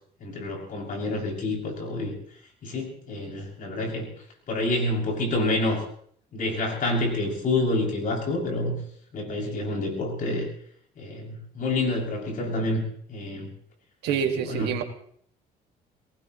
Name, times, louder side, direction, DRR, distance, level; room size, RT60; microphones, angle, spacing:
voice 1, 0.2-2.1 2.6-4.1 4.5-5.8 6.3-8.7 9.1-10.5 11.0-12.8 13.1-13.5 14.1-14.2 14.5-14.8, left 2 dB, 55° left, -1 dB, 6.8 m, -28 dB
voice 2, 14.0-14.8, right 8 dB, 80° right, 5 dB, 2.0 m, -26 dB
23.5 x 18.5 x 3.1 m, 0.63 s
cardioid pair, 110°, 17 cm